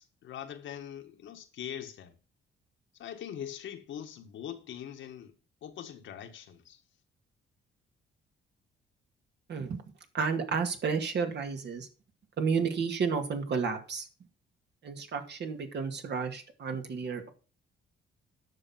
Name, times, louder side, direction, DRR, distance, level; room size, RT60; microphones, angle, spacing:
voice 1, 0.0-2.1 2.9-5.3 5.6-6.8, left 9 dB, 75° left, 1.6 m, -42 dB
voice 2, 9.5-9.8 10.1-11.9 12.4-14.1 14.8-17.3, right 5 dB, 60° right, 2.3 m, -31 dB
9.8 x 6.5 x 5.7 m
cardioid pair, 90°, 20 cm